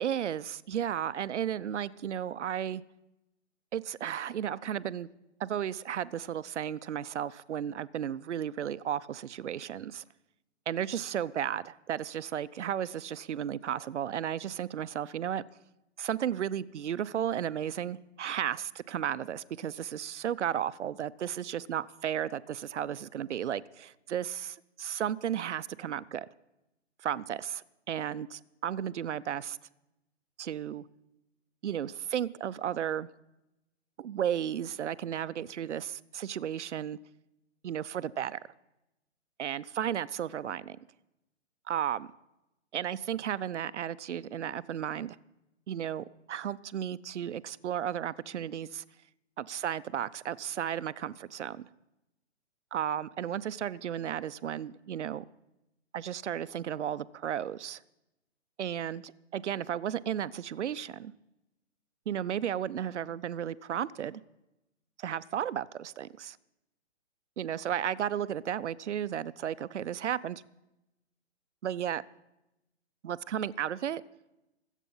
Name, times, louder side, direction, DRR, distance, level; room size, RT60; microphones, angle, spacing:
voice 1, 0.0-2.8 3.7-5.1 5.4-10.0 10.7-15.4 16.0-26.3 27.0-29.6 30.4-30.8 31.6-33.1 34.0-37.0 37.6-38.4 39.4-40.8 41.7-42.1 42.7-45.2 45.7-48.8 49.4-51.7 52.7-55.2 55.9-57.8 58.6-61.1 62.1-64.2 65.0-66.4 67.4-70.4 71.6-72.0 73.0-74.0, right 9 dB, 70° right, 18 dB, 0.6 m, -34 dB
23.0 x 8.3 x 5.5 m, 0.93 s
hypercardioid pair, 165°, 37 cm